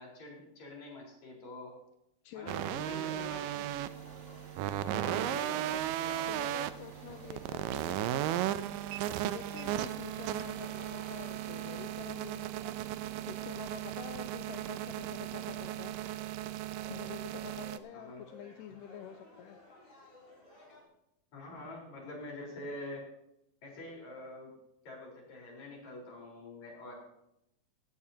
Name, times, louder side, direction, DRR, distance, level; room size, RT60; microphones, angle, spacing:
voice 1, 0.0-1.7 2.3-3.4 5.0-5.7 6.0-6.4 17.9-18.2 21.3-23.1 23.6-24.5 24.8-26.9, left 1 dB, 55° left, -2 dB, 5.6 m, -46 dB
voice 2, 2.2-3.7 4.9-5.8 6.3-12.5 13.3-16.0 16.9-19.6, left 10 dB, 80° left, 7 dB, 2.2 m, -48 dB
sound 1, 2.5-17.8, right 13 dB, 85° right, 2.3 m, -36 dB
sound 2, 3.3-11.9, equal, 5° right, 2.9 m, -57 dB
sound 3, 3.8-20.8, left 2 dB, 15° left, 4.2 m, -58 dB
16.5 x 16.0 x 2.9 m, 0.83 s
omnidirectional pair, 3.9 m